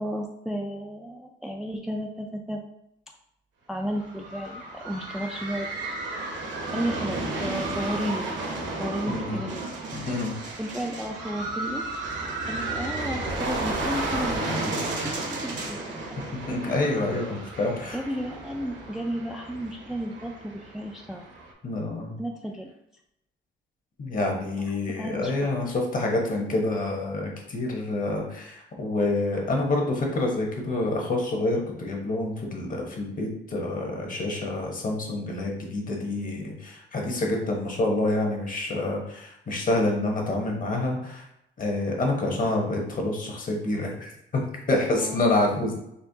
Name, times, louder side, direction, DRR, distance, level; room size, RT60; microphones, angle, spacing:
voice 1, 0.0-2.6 3.7-5.7 6.7-8.3 8.8-9.7 10.6-11.8 12.5-16.2 17.9-21.3 22.2-22.7 25.0-25.6 44.9-45.2, equal, ahead, 1 dB, 0.3 m, -33 dB
sound 1, 3.9-21.5, right 2 dB, 65° right, 0.9 m, -33 dB
voice 2, 9.1-9.4 9.9-10.3 16.5-18.0 21.6-22.1 24.0-41.2 41.6-45.7, left 2 dB, 45° left, 1 dB, 1.1 m, -27 dB
4.3 x 2.9 x 2.7 m, 0.79 s
cardioid pair, 90°, 20 cm